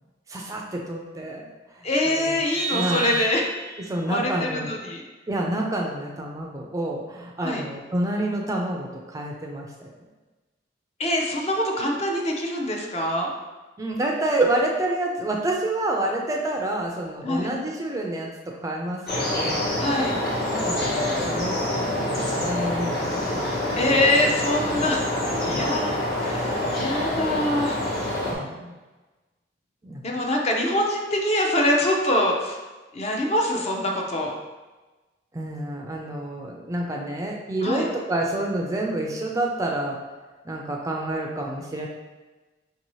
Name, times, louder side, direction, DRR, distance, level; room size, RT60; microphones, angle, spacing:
voice 1, 0.3-1.5 1.7-2.4 2.7-3.2 3.9-4.7 5.3-9.9 13.8-19.6 20.5-24.3 25.4-25.8 28.3-28.7 29.8-30.0 35.3-40.0 40.5-41.9, right 1 dB, 20° right, 0 dB, 0.4 m, -28 dB
voice 2, 1.8-3.4 4.1-5.0 7.4-7.6 11.0-13.3 17.2-17.5 19.8-20.2 23.8-25.0 25.5-25.9 26.2-27.8 30.0-32.6 32.9-34.3 37.6-37.8, left 1 dB, 35° left, 0 dB, 0.5 m, -24 dB
Vehicle horn car horn honking, 2.5-3.9, right 4 dB, 80° left, 1.2 m, -30 dB
sound 1, 19.1-28.3, left 1 dB, 60° left, 1.2 m, -26 dB
5.2 x 2.7 x 3.0 m, 1.2 s
head